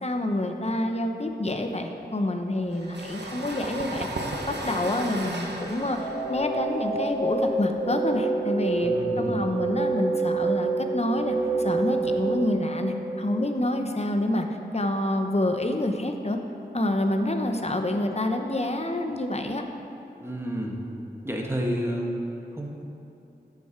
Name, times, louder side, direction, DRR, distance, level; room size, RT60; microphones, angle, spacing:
voice 1, 0.0-4.1 4.5-8.9 9.2-14.4 14.7-16.4 16.7-19.6, left 1 dB, 40° left, 4 dB, 0.9 m, -27 dB
sound 1, 2.7-8.2, right 2 dB, 85° right, 1.1 m, -35 dB
sound 2, 5.8-13.8, right 3 dB, 60° left, 2.6 m, -28 dB
voice 2, 8.8-9.4 20.2-20.8 21.2-22.1 22.5-22.7, equal, 15° right, -1 dB, 1.5 m, -30 dB
14.5 x 7.0 x 4.6 m, 2.9 s
wide cardioid pair, 60°, 17 cm